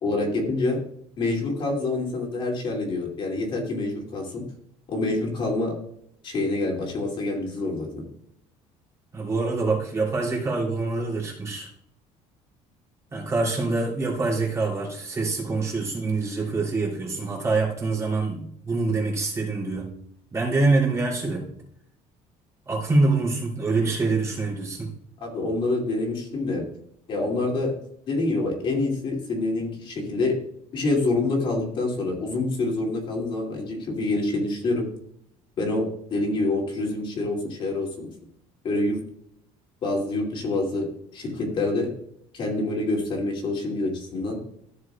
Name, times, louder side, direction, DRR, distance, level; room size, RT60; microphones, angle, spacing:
voice 1, 0.0-0.8 1.2-4.5 4.9-5.7 6.2-8.1 25.2-26.7 27.1-27.7 28.1-30.4 30.7-34.8 35.6-38.1 38.6-39.0 39.8-40.9 41.1-41.9 42.3-44.4, left 2 dB, 40° left, -1 dB, 2.7 m, -26 dB
voice 2, 9.1-11.7 13.1-19.9 20.3-21.5 22.7-24.9, right 3 dB, 20° right, -4 dB, 3.1 m, -25 dB
14.0 x 6.5 x 2.4 m, 0.69 s
cardioid pair, 165°, 13 cm